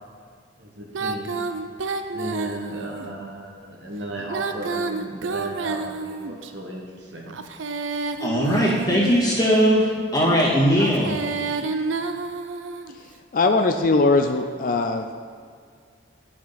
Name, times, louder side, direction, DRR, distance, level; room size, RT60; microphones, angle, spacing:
voice 1, 0.6-1.4 2.1-7.4, right 1 dB, 60° right, -1 dB, 1.5 m, -35 dB
Female singing, 0.9-3.1 4.2-6.5 7.3-9.4 10.7-12.9, right 4 dB, 80° right, 0.5 m, -29 dB
voice 2, 8.2-11.2, equal, 20° left, -6 dB, 2.0 m, -19 dB
voice 3, 13.3-15.1, left 3 dB, 45° left, 6 dB, 0.4 m, -20 dB
11.0 x 6.1 x 4.0 m, 2.1 s
head